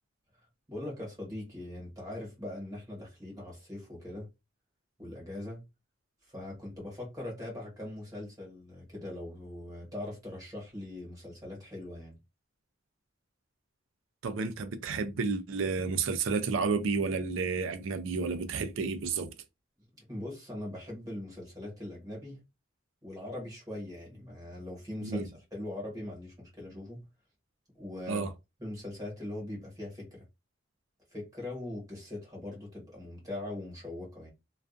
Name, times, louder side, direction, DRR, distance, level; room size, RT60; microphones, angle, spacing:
voice 1, 0.7-4.3 5.0-5.6 6.3-12.1 20.0-22.4 23.0-27.0 27.7-28.3 28.6-30.2 31.1-34.3, left 1 dB, 20° right, 1.3 m, -41 dB
voice 2, 14.2-19.3 25.0-25.3 28.1-28.3, right 4 dB, 85° right, 0.4 m, -31 dB
2.4 x 2.3 x 2.4 m
head